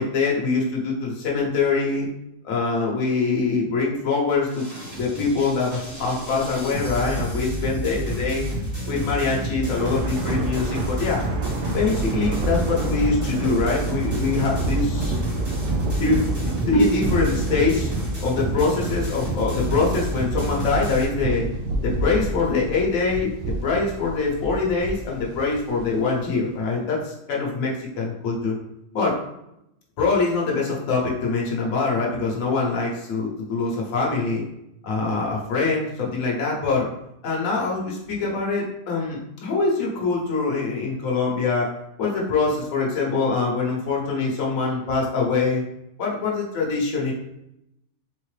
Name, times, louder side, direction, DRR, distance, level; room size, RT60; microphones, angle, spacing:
voice 1, 0.0-2.1 2.4-4.6 5.0-8.5 8.9-11.2 11.7-15.2 16.0-16.2 16.7-17.9 18.2-21.5 21.8-23.3 23.6-28.6 28.9-29.2 30.0-34.4 34.8-36.9 37.2-41.7 42.0-45.6 46.0-47.1, left 4 dB, 60° left, -3 dB, 1.3 m, -24 dB
sound 1, 4.5-21.0, right 1 dB, 15° right, 1.0 m, -30 dB
Thunder, 9.6-26.2, right 2 dB, 65° right, 0.7 m, -29 dB
4.0 x 3.7 x 3.2 m, 0.84 s
omnidirectional pair, 1.7 m